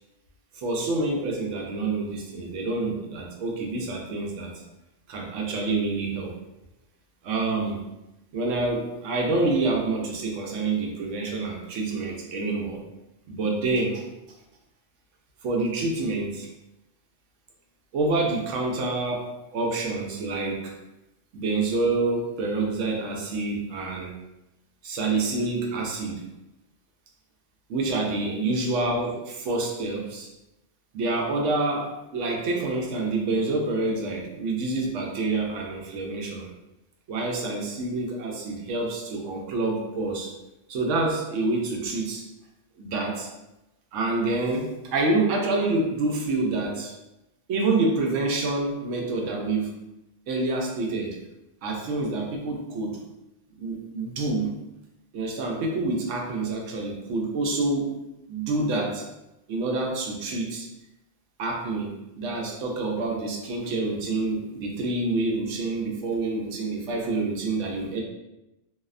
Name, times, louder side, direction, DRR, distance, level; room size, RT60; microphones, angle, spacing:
voice 1, 0.5-4.5 5.1-6.3 7.2-7.8 8.3-12.8 13.3-14.0 15.4-16.5 17.9-19.2 19.5-20.7 21.3-24.1 24.8-26.2 27.7-30.3 30.9-36.5 37.1-40.3 40.7-42.2 42.8-43.3 43.9-46.9 47.5-49.7 50.3-51.2 51.6-52.9 53.6-54.5 55.1-58.0 58.3-59.1 59.5-60.7 61.4-68.0, right 3 dB, 85° right, 1 dB, 0.9 m, -27 dB
2.6 x 2.1 x 2.4 m, 0.93 s
omnidirectional pair, 1.2 m